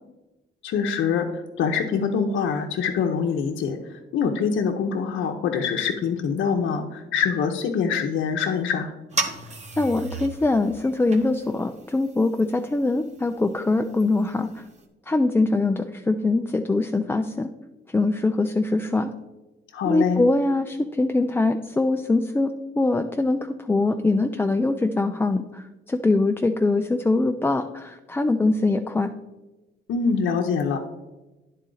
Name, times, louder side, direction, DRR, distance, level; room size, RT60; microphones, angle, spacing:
voice 1, 0.6-8.9 19.7-20.2 29.9-30.8, left 6 dB, 75° left, 2 dB, 0.7 m, -24 dB
sound 1, 9.1-14.8, right 3 dB, 35° right, 1.1 m, -36 dB
voice 2, 9.8-14.6 15.1-17.5 17.9-19.1 19.8-29.1, left 2 dB, 10° left, 5 dB, 0.3 m, -23 dB
10.0 x 4.2 x 3.8 m, 1.1 s
cardioid pair, 90°, 20 cm